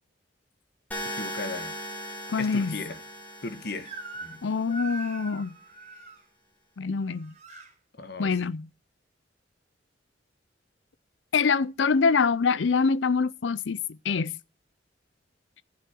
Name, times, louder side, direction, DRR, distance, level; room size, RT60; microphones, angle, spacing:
sound 1, 0.9-4.9, equal, 10° left, 2.4 m, -38 dB
voice 1, 1.1-1.8 2.4-3.0 3.4-3.9 4.2-4.4 8.0-8.4, left 3 dB, 60° left, 1.4 m, -36 dB
voice 2, 2.3-2.7 4.4-5.5 6.8-7.3 8.2-8.6 11.3-13.8 14.0-14.3, left 5 dB, 80° left, 0.5 m, -25 dB
Crying sobbing / Screech, 3.9-4.4 4.7-6.2 7.0-7.7, right 3 dB, 35° right, 2.9 m, -41 dB
14.5 x 6.3 x 4.5 m
head